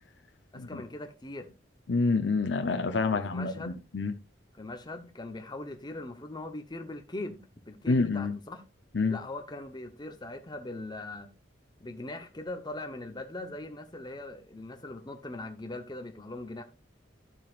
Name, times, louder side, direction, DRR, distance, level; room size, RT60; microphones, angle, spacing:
voice 1, 0.5-1.5 3.1-3.8 4.5-8.6 9.1-11.3 11.8-16.6, left 2 dB, 25° left, 1.0 m, -40 dB
voice 2, 1.9-4.1 7.9-8.4 8.9-9.2, left 3 dB, 70° left, 0.8 m, -28 dB
12.0 x 7.4 x 2.5 m
head